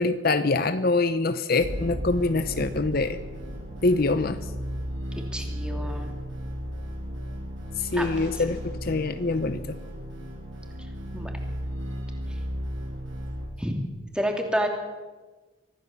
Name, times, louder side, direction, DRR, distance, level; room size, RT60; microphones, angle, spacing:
voice 1, 0.0-3.2 3.8-4.4 7.8-9.6, left 3 dB, 50° left, 11 dB, 0.8 m, -24 dB
sound 1, 1.6-13.5, equal, 75° right, 6.6 m, -34 dB
voice 2, 5.3-6.1 7.9-8.1 11.1-11.3 13.6-13.7 14.1-14.7, equal, 5° right, 2 dB, 3.0 m, -28 dB
24.5 x 15.5 x 7.2 m, 1.3 s
head